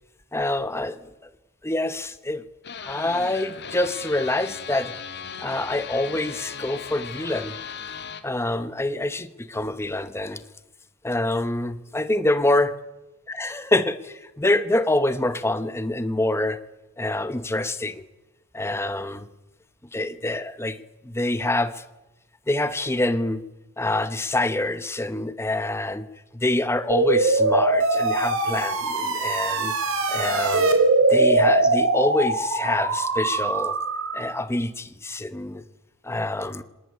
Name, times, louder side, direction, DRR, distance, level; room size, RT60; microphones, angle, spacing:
voice 1, 0.3-1.0 1.2-1.3 1.6-2.4 2.8-4.9 5.4-7.6 8.2-10.4 11.0-12.7 13.3-16.6 17.0-18.1 18.5-19.3 19.9-21.8 22.5-23.4 23.8-26.1 26.3-29.7 30.1-30.7 31.1-33.8 34.1-35.6 36.0-36.6, left 2 dB, 10° left, 0.8 m, -26 dB
sound 1, 2.6-8.2, left 7 dB, 50° left, 1.7 m, -37 dB
sound 2, 26.9-34.4, right 2 dB, 65° right, 4.1 m, -22 dB
26.0 x 19.5 x 9.6 m
head